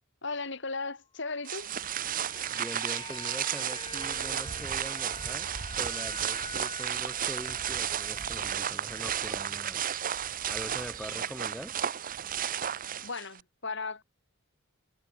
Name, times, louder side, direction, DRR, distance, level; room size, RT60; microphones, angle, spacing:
voice 1, 0.2-1.7 11.1-11.3 13.0-14.0, left 3 dB, 65° left, 6.1 m, -36 dB
sound 1, 1.4-9.7 9.9-10.1, left 4 dB, 25° left, 4.9 m, -47 dB
sound 2, 1.4-13.4, right 9 dB, 45° right, 0.8 m, -33 dB
voice 2, 2.5-9.8 10.5-11.7, equal, ahead, 6.5 m, -43 dB
head